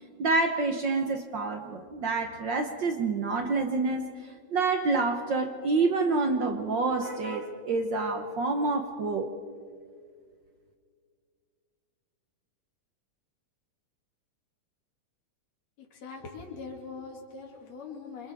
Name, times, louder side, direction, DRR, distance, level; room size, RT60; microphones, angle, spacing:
voice 1, 0.2-4.0 4.5-9.3, right 3 dB, 65° right, 5 dB, 1.1 m, -27 dB
voice 2, 15.8-18.3, left 4 dB, 60° left, 0 dB, 3.6 m, -42 dB
28.5 x 26.5 x 3.5 m, 2.1 s
omnidirectional pair, 3.4 m